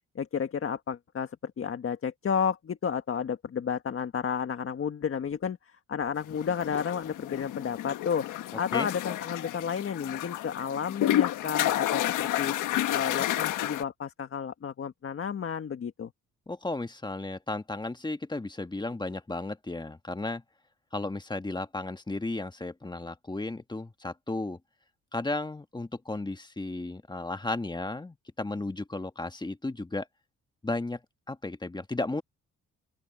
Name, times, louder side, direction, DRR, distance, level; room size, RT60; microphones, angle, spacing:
voice 1, 0.2-8.3 8.6-12.5 12.9-16.1, left 7 dB, 45° left, 1.7 m, -32 dB
sound 1, 6.3-13.8, left 13 dB, 85° left, 1.4 m, -30 dB
voice 2, 16.5-20.4 20.9-24.6 25.1-30.1 30.6-31.0 31.3-32.2, left 2 dB, 15° left, 1.6 m, -34 dB
open air
cardioid pair, 90°, 30 cm